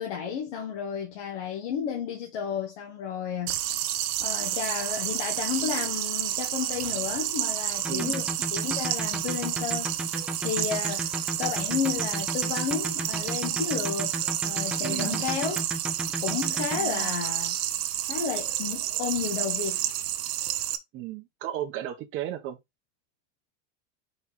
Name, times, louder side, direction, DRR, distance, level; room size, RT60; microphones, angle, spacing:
voice 1, 0.0-3.6 4.2-9.9 10.4-14.2 14.4-15.6 16.2-17.6 18.0-19.8, left 7 dB, 65° left, 1.7 m, -32 dB
sound 1, 3.5-20.8, right 13 dB, 60° right, 1.0 m, -30 dB
sound 2, 7.8-16.8, right 1 dB, 5° right, 0.4 m, -34 dB
voice 2, 7.9-8.2 14.8-15.3 16.7-17.1 20.9-22.6, right 12 dB, 35° right, 1.3 m, -35 dB
5.6 x 3.9 x 4.7 m
supercardioid pair, 165°, 35 cm